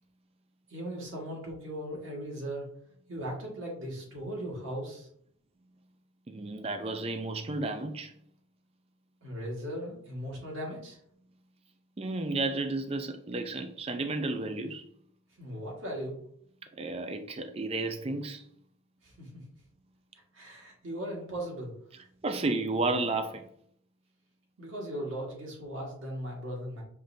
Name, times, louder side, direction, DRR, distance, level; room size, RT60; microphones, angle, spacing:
voice 1, 0.7-2.7 3.1-5.1 9.2-11.0 15.4-16.2 19.0-19.4 20.3-21.7 24.6-26.8, equal, 70° right, 1.6 m, -38 dB
voice 2, 6.3-8.1 12.0-14.8 16.7-18.5 22.2-23.4, right 2 dB, 30° right, 0.4 m, -32 dB
5.3 x 3.3 x 2.7 m
head